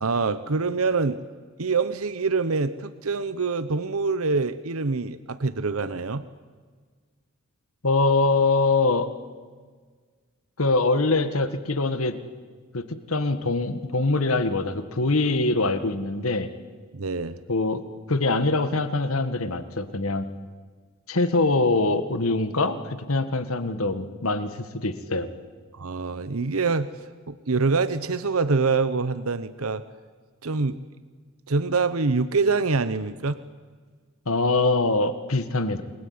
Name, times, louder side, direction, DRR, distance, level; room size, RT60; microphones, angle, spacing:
voice 1, 0.0-1.2 1.6-6.2 16.9-17.4 25.7-26.9 27.3-29.8 30.4-30.8 31.5-33.4, right 4 dB, 85° right, 13 dB, 0.9 m, -25 dB
voice 2, 7.8-9.1 10.6-12.2 12.7-16.5 17.5-17.8 18.1-20.3 21.1-25.3 34.2-35.8, left 3 dB, 85° left, 11 dB, 1.7 m, -23 dB
29.0 x 21.0 x 9.6 m, 1.5 s
head